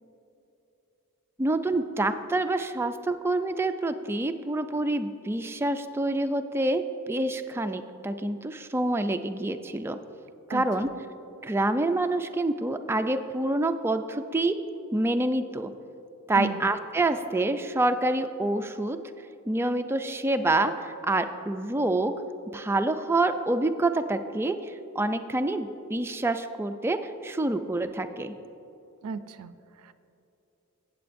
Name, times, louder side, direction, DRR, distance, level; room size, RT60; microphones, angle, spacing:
voice 1, 1.4-10.0 10.5-10.9 11.4-14.6 14.9-15.7 16.3-19.0 19.5-22.1 22.5-28.3, right 2 dB, 10° right, 8 dB, 0.3 m, -27 dB
voice 2, 10.5-10.9 16.3-16.7 29.0-29.9, right 5 dB, 90° right, 12 dB, 0.4 m, -36 dB
16.0 x 7.7 x 2.6 m, 2.9 s
head